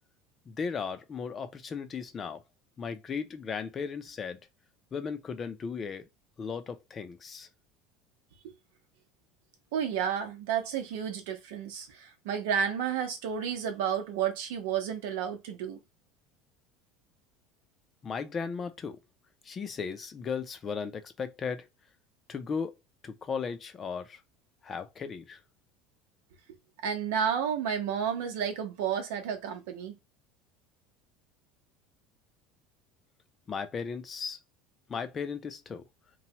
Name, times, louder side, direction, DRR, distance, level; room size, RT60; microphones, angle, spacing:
voice 1, 0.5-2.4 2.8-4.4 4.9-6.1 6.4-7.5 18.0-19.0 19.4-21.7 22.3-22.8 23.0-24.2 24.6-25.4 33.5-34.4 34.9-35.8, left 6 dB, 25° left, 0.5 m, -36 dB
voice 2, 9.7-15.8 26.8-29.9, right 8 dB, 90° right, 0.8 m, -31 dB
3.1 x 2.2 x 2.8 m
cardioid pair, 140°, 0 cm